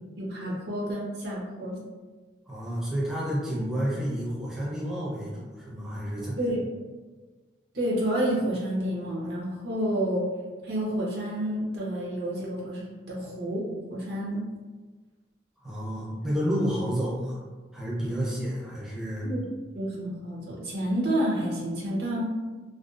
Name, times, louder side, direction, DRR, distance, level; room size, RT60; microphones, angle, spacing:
voice 1, 0.2-1.8 6.4-6.6 7.7-10.3 10.6-13.6 13.9-14.4 19.2-19.4 19.8-22.2, right 1 dB, 60° right, -5 dB, 0.7 m, -29 dB
voice 2, 2.5-6.4 15.6-17.4 17.7-19.3, equal, ahead, -8 dB, 0.6 m, -30 dB
2.5 x 2.3 x 2.4 m, 1.3 s
head